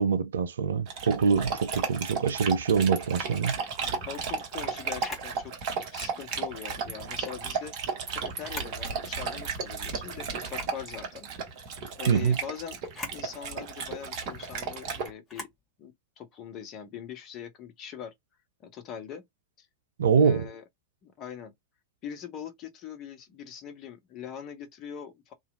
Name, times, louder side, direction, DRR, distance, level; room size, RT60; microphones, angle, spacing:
voice 1, 0.0-3.6 12.1-12.4 20.0-20.5, right 6 dB, 65° right, 0.4 m, -24 dB
Dog, 0.9-15.1, right 5 dB, 45° right, 0.9 m, -34 dB
voice 2, 3.8-5.5 5.9-7.7 8.1-11.3 11.9-12.8 13.1-15.5 15.8-18.1 18.6-19.2 19.6-19.7 20.2-20.6 21.0-21.5 22.0-25.3, left 8 dB, 35° left, 0.8 m, -42 dB
Camera, 5.0-5.3 7.1-7.4 8.3-8.8 9.3-9.4 10.4-10.8 12.8-13.2 15.3-15.6, left 2 dB, 15° left, 1.3 m, -41 dB
2.9 x 2.3 x 2.4 m
figure-of-eight pair, 90°, 0 cm